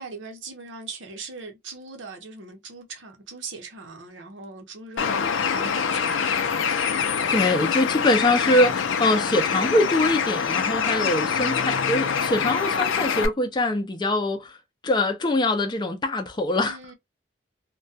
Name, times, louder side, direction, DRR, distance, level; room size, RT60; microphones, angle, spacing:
voice 1, 0.0-5.3 5.5-6.6 16.6-16.9, right 4 dB, 85° right, 0.7 m, -40 dB
Bird, 5.0-13.3, left 6 dB, 90° left, 0.4 m, -25 dB
voice 2, 7.3-14.6 14.8-16.8, left 1 dB, 25° left, 0.4 m, -23 dB
2.2 x 2.2 x 2.6 m
head